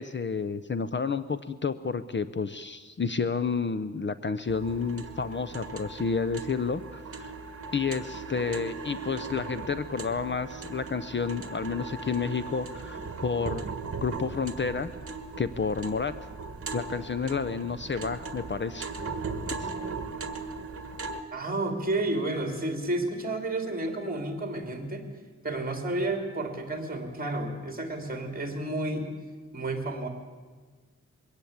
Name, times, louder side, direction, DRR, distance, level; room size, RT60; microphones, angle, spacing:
voice 1, 0.0-7.3 7.7-13.7 14.0-14.9 15.4-16.3 16.7-18.9 19.6-19.7, left 5 dB, 40° left, 12 dB, 0.6 m, -30 dB
sound 1, 4.5-21.2, right 4 dB, 50° right, 1.6 m, -38 dB
voice 2, 21.3-25.1 25.4-29.1 29.5-30.1, right 2 dB, 30° right, 5 dB, 3.0 m, -31 dB
22.0 x 17.0 x 8.7 m, 1.4 s
wide cardioid pair, 155°, 29 cm